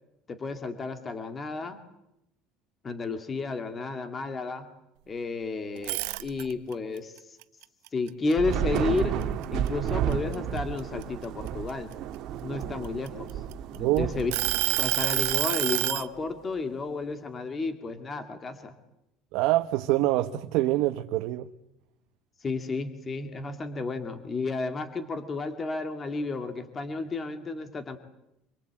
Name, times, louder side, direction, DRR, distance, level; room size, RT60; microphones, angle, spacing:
voice 1, 0.3-1.8 2.8-4.7 5.1-7.4 7.9-9.2 9.5-11.9 12.4-13.3 13.7-14.3 14.8-18.7 22.4-28.0, left 3 dB, 20° left, 8 dB, 2.1 m, -32 dB
sound 1, 5.8-6.7 7.2-9.0 9.4-9.7 10.1-11.9 12.6-13.8 14.3-16.1, right 23 dB, 80° right, 0.9 m, -28 dB
Thunder / Rain, 8.3-15.9, right 9 dB, 45° right, 2.0 m, -32 dB
voice 2, 13.8-14.1 19.3-21.5, right 16 dB, 60° right, 7 dB, 1.1 m, -25 dB
26.5 x 23.0 x 8.8 m, 0.85 s
cardioid pair, 170°, 0 cm